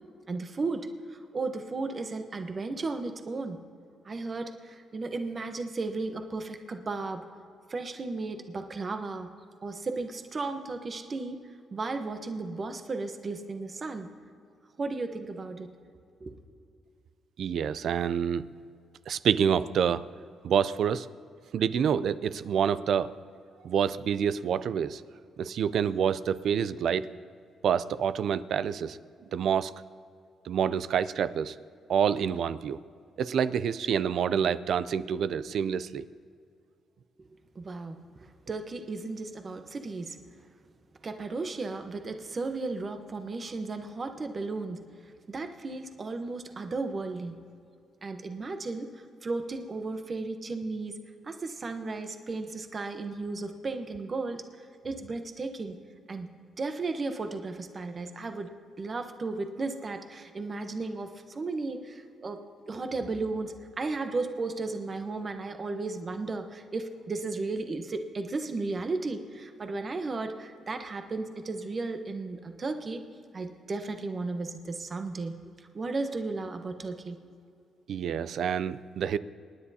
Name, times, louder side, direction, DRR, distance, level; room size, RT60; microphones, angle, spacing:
voice 1, 0.3-3.6 4.0-7.2 7.7-9.3 9.6-11.4 11.7-14.1 14.8-15.7 16.2-16.4 37.2-37.3 37.5-38.0 38.5-40.2 41.0-44.8 45.3-47.4 48.0-48.9 49.2-51.0 51.2-54.4 54.8-55.8 56.1-58.5 58.8-62.4 62.7-73.0 73.3-77.2, right 3 dB, 35° right, 7 dB, 1.0 m, -34 dB
voice 2, 17.4-18.4 19.1-20.0 20.4-21.1 21.5-23.1 23.6-25.0 25.4-27.1 27.6-29.0 29.3-29.7 30.5-31.5 31.9-32.8 33.2-36.0 77.9-79.2, right 8 dB, 65° right, 15 dB, 0.4 m, -27 dB
27.5 x 9.8 x 2.8 m, 2.4 s
cardioid pair, 90°, 0 cm